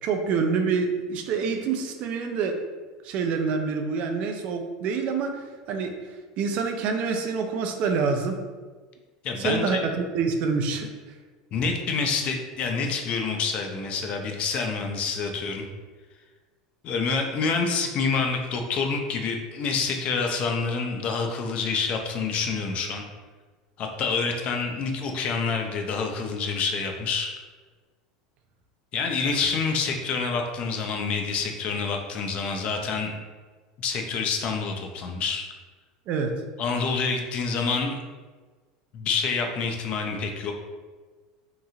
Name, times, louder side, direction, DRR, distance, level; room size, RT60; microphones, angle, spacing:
voice 1, 0.0-2.6 3.0-8.4 9.4-10.9 36.1-36.4, right 5 dB, 50° right, 5 dB, 0.4 m, -27 dB
voice 2, 9.2-9.8 11.5-15.6 16.8-23.0 23.8-27.3 28.9-33.1 33.8-35.5 36.6-38.0 38.9-40.5, left 4 dB, 45° left, 4 dB, 0.5 m, -27 dB
2.9 x 2.6 x 2.4 m, 1.4 s
hypercardioid pair, 90°, 3 cm